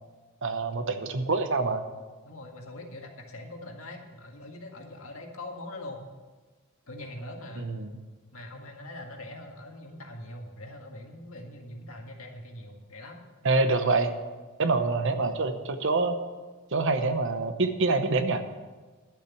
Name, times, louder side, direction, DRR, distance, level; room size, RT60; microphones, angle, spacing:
voice 1, 0.4-1.8 7.6-7.9 13.4-14.1 14.6-16.2 16.7-18.4, right 3 dB, 60° right, 9 dB, 0.9 m, -26 dB
voice 2, 2.2-6.1 6.9-7.7 8.3-13.2 14.9-15.1, left 1 dB, 75° left, 2 dB, 1.8 m, -42 dB
11.5 x 7.3 x 7.2 m, 1.3 s
head